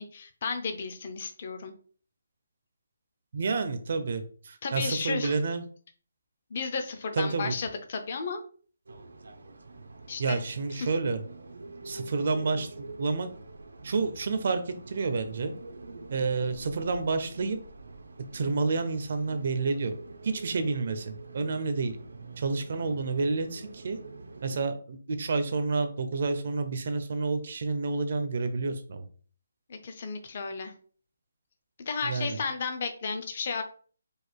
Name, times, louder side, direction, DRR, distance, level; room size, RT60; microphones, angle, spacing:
voice 1, 0.0-1.7 4.6-5.4 6.5-8.4 10.1-10.4 10.7-10.9 29.7-30.7 31.9-33.6, left 5 dB, 30° left, 7 dB, 0.6 m, -33 dB
voice 2, 3.3-5.6 7.2-7.5 10.2-11.2 11.8-13.3 13.8-15.5 16.1-17.6 18.3-19.9 20.2-22.0 22.4-24.0 24.4-29.0 32.0-32.4, right 4 dB, 40° right, 9 dB, 0.6 m, -29 dB
sound 1, 8.9-24.6, right 3 dB, 90° right, 0.8 m, -46 dB
4.8 x 2.5 x 4.5 m, 0.43 s
hypercardioid pair, 175°, 0 cm